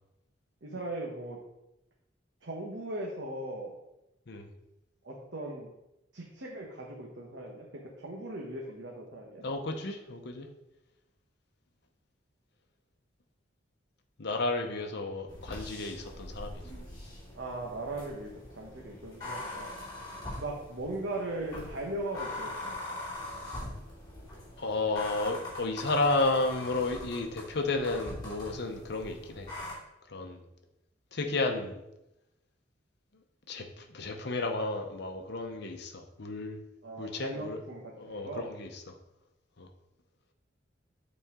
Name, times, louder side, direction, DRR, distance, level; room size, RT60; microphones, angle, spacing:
voice 1, 0.6-1.4 2.4-3.7 5.0-5.7 6.1-9.4 17.3-19.8 20.4-22.5 36.8-38.5, right 2 dB, 70° right, -2 dB, 1.0 m, -38 dB
voice 2, 9.4-10.5 14.2-16.6 24.6-29.5 30.1-30.4 31.1-31.8 33.5-36.6 37.0-37.6 38.0-38.7 39.6-39.7, left 2 dB, 60° left, 4 dB, 0.8 m, -32 dB
sound 1, 15.3-29.7, left 2 dB, 20° left, 2.6 m, -42 dB
8.4 x 4.2 x 3.7 m, 0.88 s
head